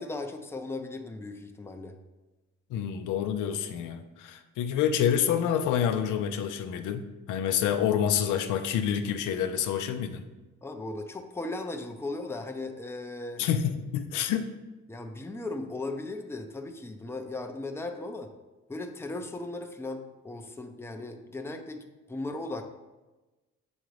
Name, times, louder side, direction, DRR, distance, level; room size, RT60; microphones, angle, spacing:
voice 1, 0.0-1.9 10.6-13.4 14.9-18.3 18.7-22.6, left 2 dB, 10° left, 5 dB, 0.5 m, -37 dB
voice 2, 2.7-10.2 13.4-14.5, left 9 dB, 85° left, 7 dB, 0.6 m, -28 dB
8.0 x 3.8 x 3.1 m, 1.1 s
cardioid pair, 90°, 30 cm